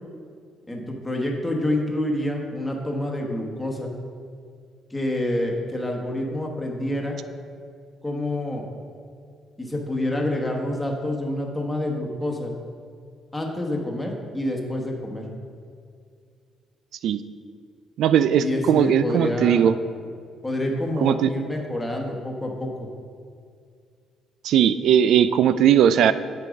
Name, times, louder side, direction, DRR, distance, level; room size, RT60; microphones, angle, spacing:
voice 1, 0.7-3.9 4.9-7.2 8.0-8.6 9.6-12.5 13.3-15.2 18.4-19.7 20.4-22.7, left 1 dB, 10° left, 0 dB, 1.2 m, -27 dB
voice 2, 18.0-19.7 21.0-21.3 24.4-26.1, right 9 dB, 70° right, 13 dB, 0.3 m, -18 dB
8.5 x 4.7 x 5.2 m, 2.2 s
cardioid pair, 115°, 0 cm